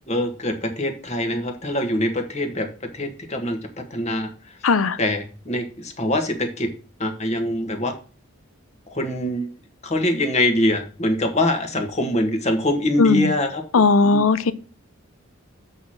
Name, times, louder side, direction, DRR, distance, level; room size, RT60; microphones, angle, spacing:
voice 1, 0.1-3.6 3.9-4.3 5.0-6.7 7.0-7.9 8.9-9.5 9.8-13.6 14.0-14.2, left 1 dB, 35° left, 1.4 m, -24 dB
voice 2, 4.6-5.0 13.0-13.3 13.7-14.5, left 4 dB, 90° left, 0.7 m, -17 dB
8.2 x 4.3 x 6.3 m
head